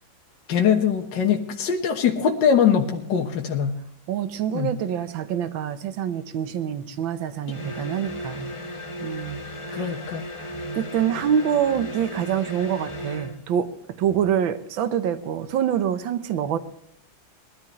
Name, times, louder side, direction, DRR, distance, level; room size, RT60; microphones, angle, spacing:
voice 1, 0.5-3.7 4.5-4.7 9.7-10.2, left 7 dB, 65° left, 2 dB, 1.9 m, -22 dB
voice 2, 4.1-8.5 9.0-10.0 10.4-10.5 10.7-13.7 14.0-16.6, right 9 dB, 80° right, 10 dB, 1.7 m, -26 dB
sound 1, 7.5-13.4, equal, 25° left, 0.7 m, -35 dB
20.5 x 13.5 x 3.1 m, 0.71 s
omnidirectional pair, 2.2 m